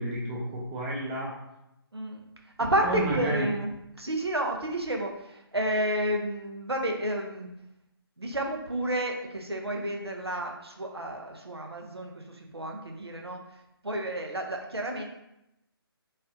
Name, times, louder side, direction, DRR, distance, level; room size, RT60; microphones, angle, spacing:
voice 1, 0.0-1.4 2.8-3.5, right 2 dB, 10° right, -4 dB, 0.4 m, -31 dB
voice 2, 2.6-3.7 4.0-7.5 8.2-13.4 13.8-15.0, right 1 dB, 85° right, 1 dB, 0.8 m, -30 dB
4.1 x 3.2 x 2.6 m, 0.86 s
figure-of-eight pair, 145°, 13 cm